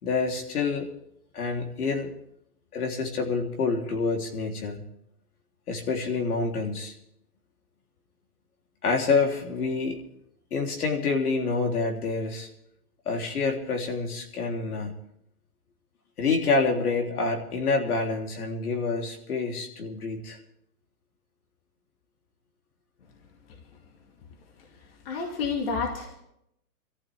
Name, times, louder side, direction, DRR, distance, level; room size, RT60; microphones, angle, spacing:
voice 1, 0.0-0.9 1.3-2.1 2.7-4.8 5.7-6.9 8.8-10.0 10.5-12.5 13.1-15.0 16.2-20.4, left 4 dB, 70° left, 2 dB, 3.5 m, -27 dB
voice 2, 24.7-26.2, left 5 dB, 40° left, 2 dB, 2.3 m, -31 dB
24.5 x 14.5 x 3.5 m, 0.77 s
hypercardioid pair, 170°, 46 cm